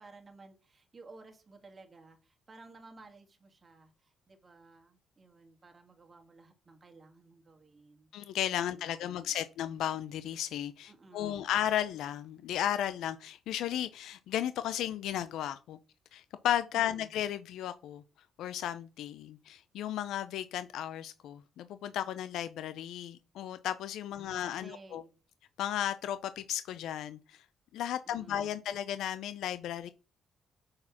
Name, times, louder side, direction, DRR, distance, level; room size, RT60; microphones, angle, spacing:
voice 1, 0.0-8.1 8.7-9.3 10.9-11.6 16.7-17.1 24.1-25.2 28.1-28.7, right 3 dB, 30° right, 1.8 m, -55 dB
voice 2, 8.1-15.8 16.1-18.0 18.4-25.0 25.6-27.4 27.7-29.9, left 11 dB, 85° left, 0.5 m, -34 dB
6.5 x 4.2 x 5.8 m
cardioid pair, 90°, 0 cm